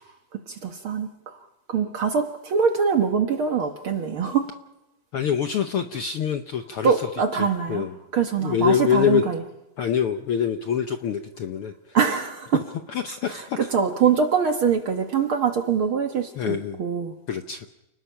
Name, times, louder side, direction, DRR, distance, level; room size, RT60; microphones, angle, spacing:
voice 1, 0.3-1.1 1.7-4.4 6.8-7.9 8.1-9.4 11.9-12.6 13.3-17.1, right 6 dB, 55° right, 5 dB, 1.7 m, -23 dB
voice 2, 5.1-7.1 7.4-8.0 8.4-9.3 9.8-12.0 12.9-13.7 16.3-16.8 17.3-17.7, left 8 dB, 70° left, 6 dB, 1.3 m, -25 dB
29.5 x 19.5 x 5.7 m, 0.97 s
omnidirectional pair, 3.6 m